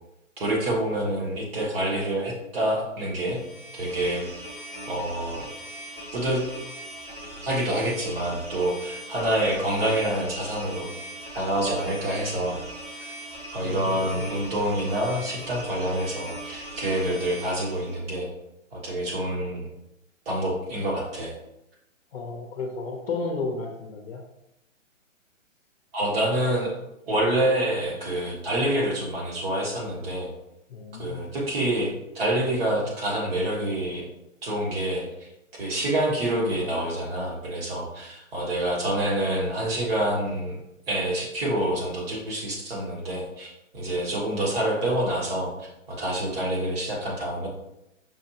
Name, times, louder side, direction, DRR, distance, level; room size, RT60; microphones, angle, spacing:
voice 1, 0.4-3.4 3.7-4.3 4.9-5.5 6.1-6.4 7.4-10.9 11.3-12.6 13.5-18.3 18.7-19.7 20.2-21.3 25.9-26.7 27.1-30.3 31.0-34.1 34.4-35.1 35.6-40.6 40.9-47.5, right 1 dB, 45° right, -3 dB, 1.5 m, -27 dB
sound 1, 3.2-18.0, right 1 dB, 10° right, 0.7 m, -40 dB
voice 2, 13.6-14.2 22.1-24.2 30.7-31.3, left 3 dB, 50° left, 0 dB, 0.7 m, -33 dB
5.6 x 2.6 x 2.8 m, 0.85 s
hypercardioid pair, 155°, 40 cm